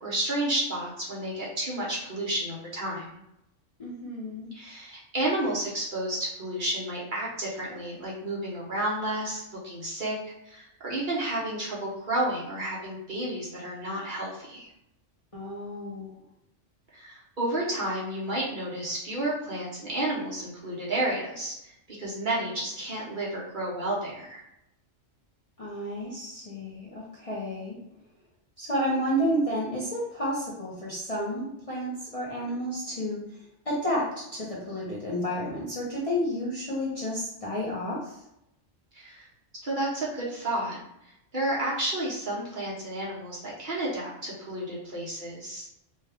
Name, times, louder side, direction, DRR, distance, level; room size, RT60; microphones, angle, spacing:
voice 1, 0.0-3.2 4.5-10.1 10.5-14.7 16.9-24.4 38.9-39.3 39.6-40.8 41.3-45.7, right 1 dB, 45° right, -5 dB, 1.0 m, -31 dB
voice 2, 3.8-4.5 15.3-16.2 25.6-27.8 28.6-38.2, equal, 35° left, -6 dB, 0.6 m, -31 dB
3.2 x 2.2 x 3.4 m, 0.82 s
omnidirectional pair, 1.3 m